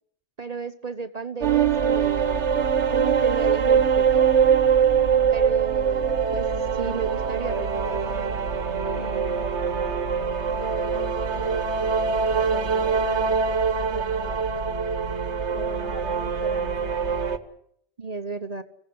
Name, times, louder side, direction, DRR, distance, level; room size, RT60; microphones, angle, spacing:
voice 1, 0.4-4.3 5.3-8.0 18.0-18.6, right 4 dB, 40° right, 9 dB, 1.0 m, -34 dB
sound 1, 1.4-17.4, right 6 dB, 85° right, 1.6 m, -23 dB
voice 2, 5.0-5.4 9.0-10.0 10.5-14.4 15.5-16.9, left 1 dB, 30° left, 4 dB, 1.6 m, -40 dB
26.0 x 16.5 x 7.9 m, 0.71 s
omnidirectional pair, 1.1 m